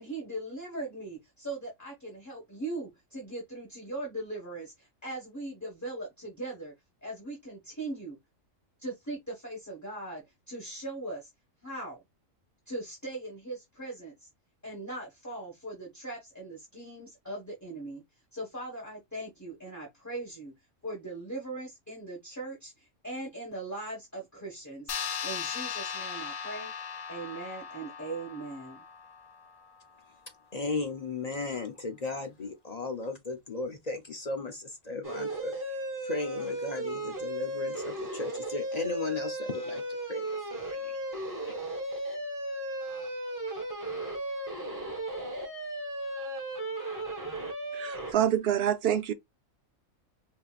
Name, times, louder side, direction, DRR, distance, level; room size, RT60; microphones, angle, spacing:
voice 1, 0.0-6.7 7.0-8.2 8.8-11.3 11.6-12.0 12.7-14.3 14.6-18.0 18.3-20.5 20.8-24.9 25.2-26.7 27.1-28.8, right 2 dB, 15° left, 1.3 m, -39 dB
sound 1, 24.9-29.8, left 7 dB, 90° left, 1.1 m, -38 dB
voice 2, 30.5-35.8 36.0-39.8 40.1-40.3 40.5-41.0 41.5-41.6, left 3 dB, 40° left, 0.6 m, -36 dB
sound 2, 35.0-48.1, right 1 dB, 15° right, 1.1 m, -35 dB
voice 3, 47.7-49.1, right 10 dB, 60° right, 0.8 m, -27 dB
5.3 x 2.8 x 2.4 m
omnidirectional pair, 1.4 m